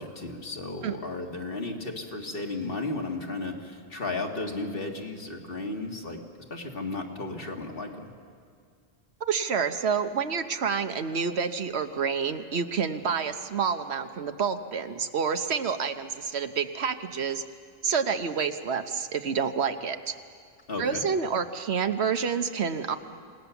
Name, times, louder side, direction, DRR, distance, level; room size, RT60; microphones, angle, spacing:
voice 1, 0.0-6.2 6.5-8.1 20.7-21.0, left 2 dB, 55° left, 1 dB, 2.2 m, -34 dB
voice 2, 9.2-17.4 17.8-20.1 20.8-23.0, right 6 dB, 75° right, 9 dB, 1.2 m, -28 dB
27.5 x 18.5 x 7.1 m, 2.2 s
omnidirectional pair, 1.1 m